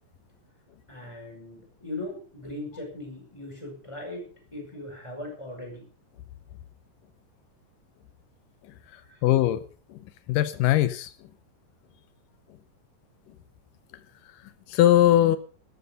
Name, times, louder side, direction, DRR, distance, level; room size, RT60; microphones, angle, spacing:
voice 1, 0.9-4.2 4.5-5.9 9.0-9.2, left 1 dB, 10° left, 1 dB, 5.7 m, -39 dB
voice 2, 9.2-9.6 9.9-10.0 10.3-11.1 14.7-15.4, left 13 dB, 85° left, 13 dB, 2.4 m, -20 dB
14.5 x 12.5 x 5.2 m, 0.39 s
omnidirectional pair, 3.8 m